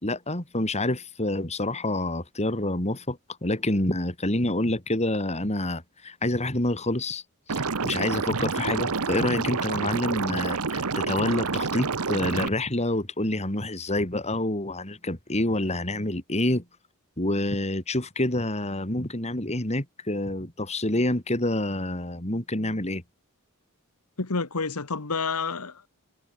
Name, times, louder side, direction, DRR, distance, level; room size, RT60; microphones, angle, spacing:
voice 1, 0.0-7.2 7.5-16.6 17.2-23.0, left 1 dB, 30° left, 3.9 m, -27 dB
Liquid, 7.5-12.5, right 4 dB, 80° right, 1.2 m, -28 dB
voice 2, 24.2-25.9, left 4 dB, 90° left, 1.6 m, -29 dB
head